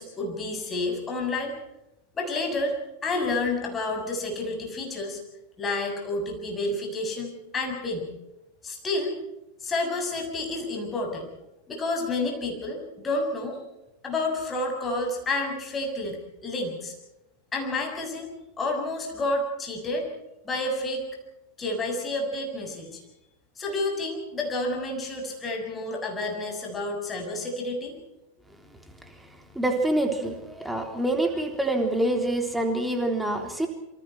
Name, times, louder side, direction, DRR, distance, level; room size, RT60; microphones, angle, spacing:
voice 1, 0.0-1.6 2.1-2.8 3.0-5.2 5.6-8.1 8.6-9.1 9.6-11.3 11.7-13.6 14.0-16.9 17.5-18.3 18.6-20.1 20.4-21.0 21.6-23.0 23.5-28.0, left 2 dB, 20° left, 2 dB, 6.9 m, -30 dB
voice 2, 29.5-33.7, right 1 dB, 5° right, 4 dB, 3.5 m, -26 dB
27.5 x 24.5 x 4.6 m, 0.92 s
figure-of-eight pair, 90°, 0 cm